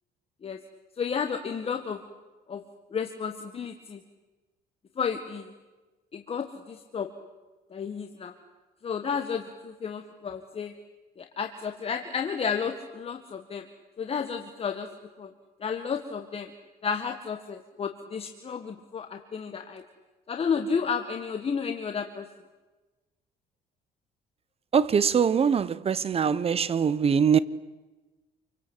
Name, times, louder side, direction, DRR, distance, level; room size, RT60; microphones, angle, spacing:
voice 1, 1.0-2.0 2.5-2.6 2.9-4.0 5.0-5.5 6.1-7.1 7.7-8.3 8.8-10.7 11.2-13.6 14.0-14.9 15.2-15.3 15.6-16.5 16.8-19.8 20.3-22.3, left 6 dB, 35° left, 1.8 m, -32 dB
voice 2, 24.7-27.4, right 7 dB, 35° right, 1.1 m, -23 dB
28.0 x 24.5 x 8.1 m
cardioid pair, 110°, 17 cm